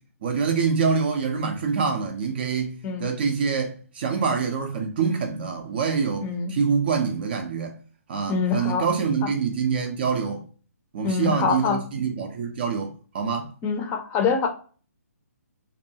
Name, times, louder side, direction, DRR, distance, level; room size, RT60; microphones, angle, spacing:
voice 1, 0.2-7.7 8.1-10.4 10.9-13.5, right 5 dB, 40° right, 0.4 m, -25 dB
voice 2, 6.2-6.5 8.3-8.8 9.2-9.3 11.0-11.8 13.6-14.5, left 5 dB, 20° left, 0.5 m, -25 dB
2.6 x 2.2 x 2.7 m
figure-of-eight pair, 135°, 8 cm